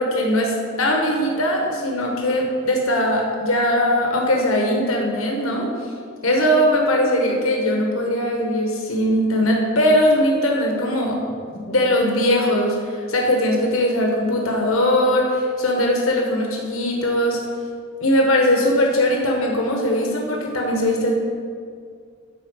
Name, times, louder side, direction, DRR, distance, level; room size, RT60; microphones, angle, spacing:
voice 1, 0.0-5.7 6.2-17.4 18.0-21.1, left 1 dB, 80° left, 0 dB, 1.3 m, -20 dB
9.9 x 4.4 x 6.4 m, 2.1 s
head